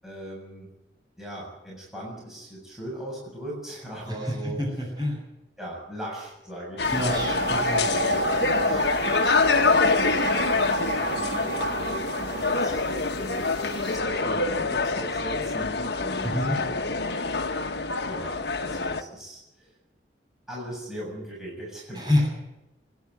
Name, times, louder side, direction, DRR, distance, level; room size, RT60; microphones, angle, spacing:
voice 1, 0.0-0.7 1.2-4.6 5.6-8.2 8.6-9.0 9.5-16.9 18.0-19.7 20.5-22.3, right 1 dB, 5° right, -5 dB, 7.2 m, -39 dB
voice 2, 4.1-5.2 6.9-7.9 16.2-16.6 21.9-22.3, left 1 dB, 25° right, -1 dB, 7.7 m, -27 dB
sound 1, 6.8-19.0, left 4 dB, 65° left, 1.3 m, -26 dB
sound 2, 6.8-14.0, right 4 dB, 80° right, 1.7 m, -31 dB
25.5 x 11.0 x 9.4 m, 0.95 s
head